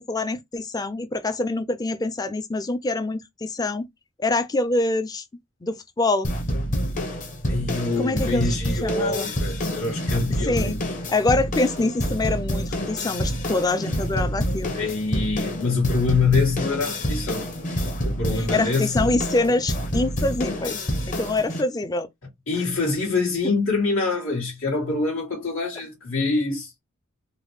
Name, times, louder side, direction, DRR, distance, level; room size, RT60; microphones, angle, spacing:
voice 1, 0.0-3.9 4.2-5.2 5.6-6.3 8.0-9.3 10.4-10.8 11.1-14.8 18.3-22.1 22.6-22.9, left 2 dB, 20° left, 0.4 m, -25 dB
sound 1, 6.2-21.6, equal, 40° left, 0.8 m, -27 dB
voice 2, 7.5-10.9 14.7-17.5 18.0-19.0 22.5-26.7, left 3 dB, 85° left, 1.5 m, -25 dB
3.8 x 2.2 x 3.1 m
head